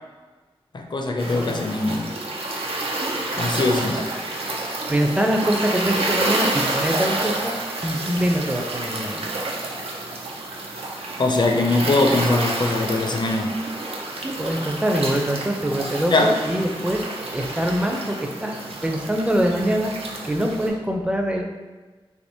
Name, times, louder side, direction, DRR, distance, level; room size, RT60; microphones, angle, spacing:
voice 1, 0.7-2.1 3.4-4.1 11.2-13.6 16.1-16.3, left 2 dB, 50° left, 3 dB, 0.4 m, -21 dB
sound 1, 1.2-20.7, right 2 dB, 80° right, 0.5 m, -29 dB
voice 2, 4.9-7.5 7.8-9.2 14.2-21.4, equal, 10° right, 2 dB, 0.4 m, -24 dB
3.4 x 2.8 x 2.7 m, 1.3 s
wide cardioid pair, 70°, 10 cm